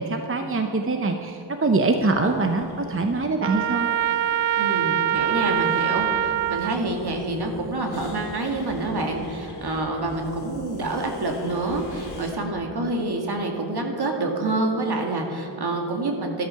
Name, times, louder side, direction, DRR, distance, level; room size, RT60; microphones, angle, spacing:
voice 1, 0.0-3.9, right 3 dB, 30° right, 5 dB, 0.8 m, -24 dB
sound 1, 2.2-12.3, left 2 dB, 60° left, 3.2 m, -43 dB
Trumpet, 3.4-6.8, right 10 dB, 70° right, 0.5 m, -24 dB
voice 2, 4.6-16.4, right 2 dB, 55° right, 1 dB, 2.2 m, -27 dB
13.0 x 12.5 x 5.8 m, 2.7 s
wide cardioid pair, 115°, 46 cm